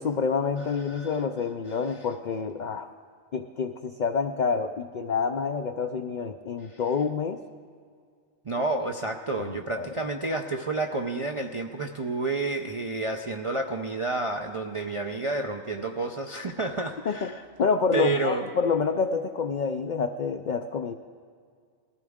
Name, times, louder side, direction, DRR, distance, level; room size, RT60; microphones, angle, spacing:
voice 1, 0.0-2.9 3.3-7.4 9.4-9.9 17.1-17.3 17.6-20.9, left 5 dB, 70° left, 7 dB, 0.4 m, -28 dB
voice 2, 0.7-1.2 1.7-1.8 6.7-6.8 8.5-17.4 17.9-18.4, right 3 dB, 50° right, 2 dB, 0.4 m, -30 dB
20.0 x 15.0 x 3.6 m, 2.1 s
omnidirectional pair, 1.4 m